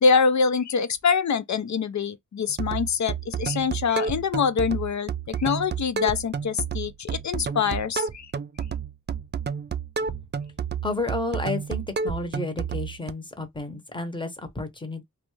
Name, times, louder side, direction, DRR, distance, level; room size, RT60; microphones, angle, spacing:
voice 1, 0.0-8.3, left 5 dB, 55° left, 0.6 m, -24 dB
sound 1, 2.5-13.1, right 6 dB, 35° right, 0.4 m, -30 dB
voice 2, 10.8-14.3 14.5-15.0, left 2 dB, 15° left, 0.9 m, -31 dB
2.5 x 2.3 x 3.1 m
cardioid pair, 55°, 34 cm